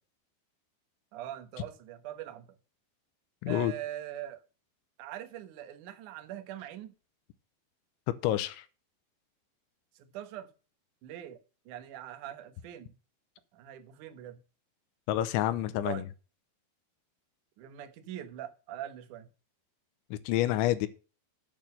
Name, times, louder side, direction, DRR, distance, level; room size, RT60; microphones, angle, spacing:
voice 1, 1.1-2.5 3.5-4.4 5.0-6.9 10.0-10.5 11.0-11.4 11.7-12.9 13.5-14.4 15.8-16.1 17.6-19.3, right 12 dB, 75° right, 1.8 m, -42 dB
voice 2, 3.4-3.7 8.2-8.6 15.1-16.0 20.1-20.9, left 13 dB, 85° left, 3.1 m, -28 dB
8.8 x 7.6 x 5.4 m
omnidirectional pair, 5.3 m